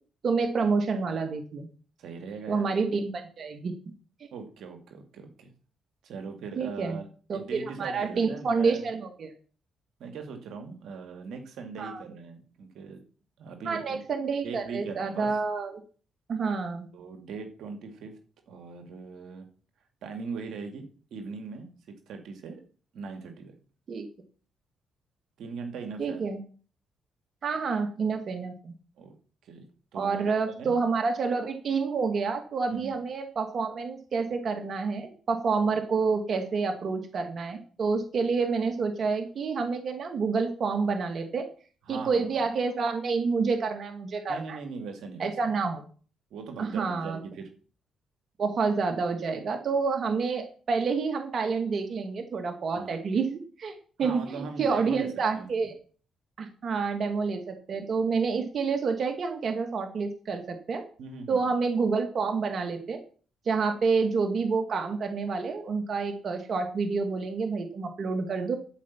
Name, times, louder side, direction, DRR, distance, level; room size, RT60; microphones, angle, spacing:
voice 1, 0.2-1.7 2.5-3.7 6.6-7.0 7.3-9.3 11.8-12.0 13.7-15.7 16.3-16.9 23.9-24.1 26.0-26.4 27.4-28.7 29.9-41.5 41.9-44.6 45.2-45.8 46.6-47.2 48.4-53.7 54.0-55.7 56.4-60.8 61.3-63.0 63.5-68.6, right 4 dB, 55° right, 5 dB, 2.0 m, -28 dB
voice 2, 2.0-2.7 4.3-5.5 6.0-8.9 10.0-13.0 13.4-14.0 14.4-15.4 16.9-18.1 18.5-19.5 20.0-21.7 22.1-22.6 22.9-23.5 25.4-26.3 29.0-29.1 29.4-30.7 32.7-33.0 41.9-42.4 44.3-45.5 46.3-47.5 52.7-52.9 54.0-55.7 61.0-61.4, right 5 dB, 75° right, 5 dB, 2.2 m, -40 dB
13.0 x 5.2 x 7.2 m, 0.41 s
cardioid pair, 75°, 0 cm